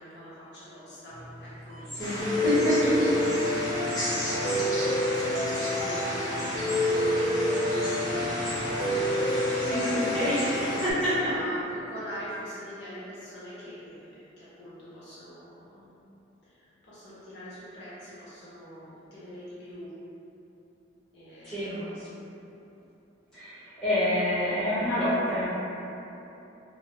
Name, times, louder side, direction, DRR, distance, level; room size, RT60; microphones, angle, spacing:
voice 1, 0.0-2.4 4.2-15.9 16.4-19.9 21.1-22.2, equal, 60° left, -10 dB, 0.7 m, -43 dB
sound 1, 1.1-9.7, equal, 65° right, 0.5 m, -45 dB
voice 2, 1.9-2.9 3.6-3.9 9.6-10.6 10.8-11.3 11.9-12.2 21.4-21.9 23.3-25.5, left 1 dB, 5° left, -16 dB, 1.0 m, -28 dB
sound 2, 2.0-10.9, equal, 20° left, 0.6 m, -33 dB
Piano, 2.2-10.9, left 1 dB, 20° right, 0.7 m, -28 dB
3.1 x 2.0 x 2.7 m, 2.9 s
head